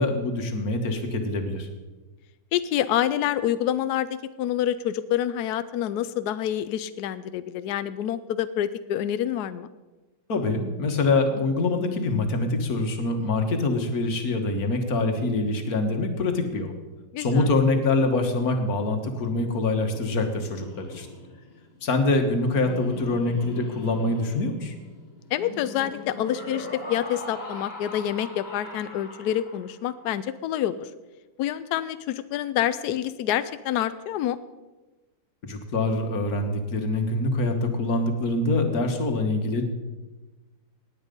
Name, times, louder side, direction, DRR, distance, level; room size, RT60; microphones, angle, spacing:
voice 1, 0.0-1.7 10.3-16.7 17.2-21.1 21.8-24.7 35.4-39.6, left 2 dB, 45° left, 5 dB, 1.8 m, -25 dB
voice 2, 2.5-9.7 17.1-17.5 25.3-30.9 31.4-34.4, left 11 dB, 80° left, 13 dB, 0.8 m, -27 dB
Laughter, 19.5-29.9, left 1 dB, 20° left, 2.9 m, -41 dB
18.5 x 9.0 x 5.3 m, 1.2 s
omnidirectional pair, 2.3 m